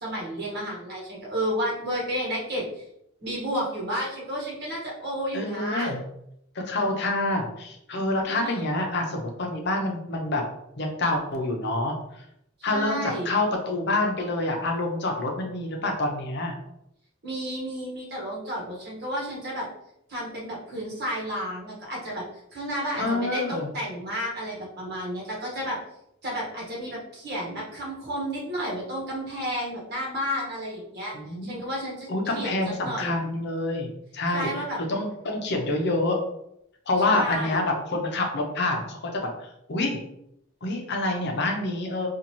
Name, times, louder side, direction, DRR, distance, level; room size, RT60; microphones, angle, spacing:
voice 1, 0.0-2.8 3.2-5.9 8.3-8.7 12.7-13.3 17.2-19.7 20.1-22.2 22.5-25.8 26.2-31.1 31.4-33.1 34.3-34.8 37.0-37.6, equal, 50° right, -4 dB, 1.4 m, -31 dB
voice 2, 5.3-6.0 6.5-10.4 10.8-11.9 12.6-16.5 23.0-23.7 31.1-31.6 32.1-34.6 34.9-36.2 36.9-40.0 40.6-42.1, left 2 dB, 55° left, 2 dB, 0.7 m, -27 dB
3.9 x 2.5 x 3.0 m, 0.77 s
head